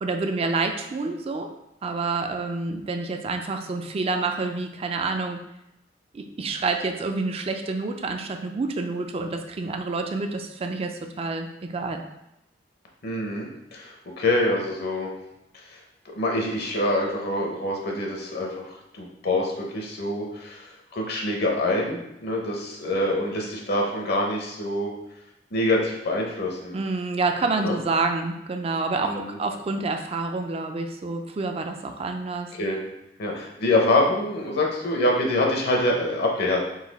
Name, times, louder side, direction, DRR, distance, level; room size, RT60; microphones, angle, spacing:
voice 1, 0.0-1.5 1.8-5.4 6.1-12.0 26.7-32.5, right 3 dB, 35° right, 5 dB, 0.3 m, -28 dB
voice 2, 13.0-15.1 15.5-24.9 25.5-26.8 27.6-27.8 29.0-29.4 32.5-32.8 33.2-36.6, left 1 dB, 60° left, 0 dB, 0.8 m, -25 dB
4.0 x 2.7 x 4.0 m, 0.86 s
head